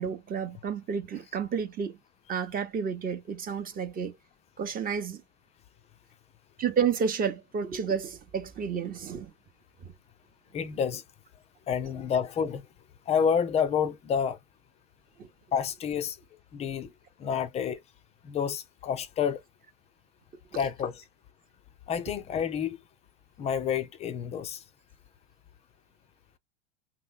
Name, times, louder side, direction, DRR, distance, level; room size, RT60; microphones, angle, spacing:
voice 1, 0.0-2.0 2.3-4.1 4.6-5.2 6.6-9.3 9.8-9.9 15.2-15.3, right 6 dB, 20° right, 0.7 m, -31 dB
voice 2, 10.5-11.0 11.7-12.7 13.1-14.4 15.5-16.2 16.5-16.9 17.2-17.8 18.2-19.4 20.5-21.0 21.9-22.8 23.4-24.6, left 7 dB, 20° left, 0.3 m, -29 dB
3.0 x 2.0 x 3.7 m
hypercardioid pair, 100°, 39 cm